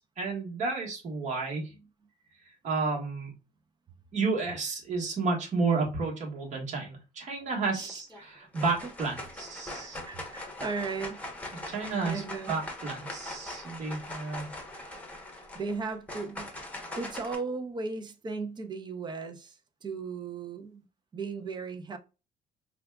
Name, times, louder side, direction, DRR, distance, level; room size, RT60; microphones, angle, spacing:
voice 1, 0.0-1.7 2.6-3.3 4.1-10.0 11.7-12.2 12.5-14.5, right 4 dB, 45° right, 1.4 m, -31 dB
sound 1, 7.8-8.2 8.5-17.3, left 1 dB, 10° left, 1.0 m, -41 dB
voice 2, 9.7-11.2 12.0-12.5 15.5-16.5 17.0-20.9 21.1-22.0, right 4 dB, 25° right, 0.6 m, -36 dB
4.8 x 2.3 x 2.3 m
cardioid pair, 110°, 17 cm